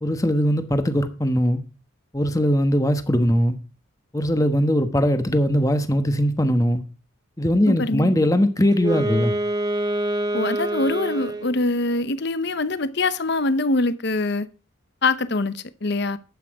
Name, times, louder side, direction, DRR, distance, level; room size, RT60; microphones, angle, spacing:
voice 1, 0.0-1.6 2.1-3.6 4.1-6.8 7.4-9.3, equal, 15° left, 1.1 m, -20 dB
voice 2, 7.7-8.2 10.3-14.5 15.0-16.2, left 2 dB, 55° left, 0.8 m, -24 dB
Wind instrument woodwind instrument, 8.7-11.7, right 1 dB, 20° right, 1.3 m, -26 dB
12.0 x 8.5 x 4.8 m
head